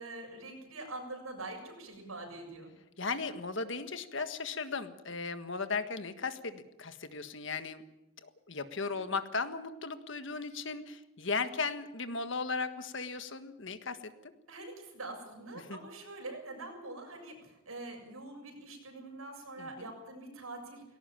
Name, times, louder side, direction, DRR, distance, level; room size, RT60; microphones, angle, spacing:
voice 1, 0.0-2.7 8.8-9.1 14.5-20.8, right 2 dB, 90° right, 2 dB, 7.4 m, -44 dB
voice 2, 3.0-7.8 8.2-14.3 15.6-15.8 19.6-19.9, left 4 dB, 60° left, 10 dB, 1.6 m, -37 dB
19.5 x 17.5 x 8.9 m, 0.97 s
head